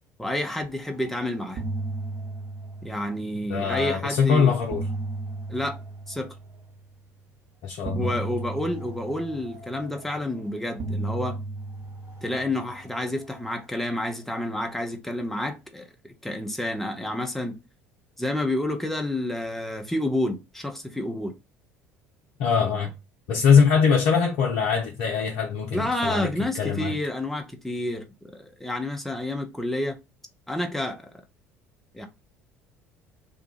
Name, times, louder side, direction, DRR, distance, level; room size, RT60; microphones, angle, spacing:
voice 1, 0.2-1.6 2.8-4.5 5.5-5.8 6.1-6.3 7.9-11.4 12.2-17.6 18.2-21.3 25.7-28.0 28.4-30.0 30.5-31.1 31.9-32.1, left 1 dB, 5° left, 0.8 m, -29 dB
sound 1, 0.9-1.1 1.4-3.7 4.4-6.8 7.8-10.3 10.8-13.4, right 2 dB, 40° right, 1.4 m, -35 dB
voice 2, 3.5-4.8 7.6-8.1 22.4-22.9 23.3-26.3 26.5-26.9, left 6 dB, 60° left, 0.6 m, -22 dB
2.7 x 2.5 x 4.1 m
figure-of-eight pair, 60°, 7 cm